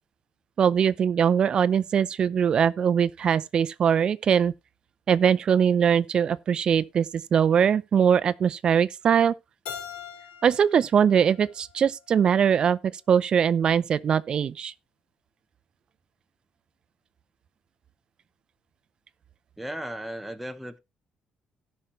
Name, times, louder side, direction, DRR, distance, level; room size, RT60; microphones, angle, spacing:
voice 1, 0.6-4.5 5.1-9.3 10.4-12.8 13.1-14.7, right 7 dB, 45° right, 0.5 m, -22 dB
Keyboard (musical), 9.6-12.5, left 8 dB, 75° left, 4.5 m, -43 dB
voice 2, 19.6-20.8, right 1 dB, 5° right, 0.9 m, -35 dB
17.0 x 5.7 x 3.1 m
cardioid pair, 135°, 2 cm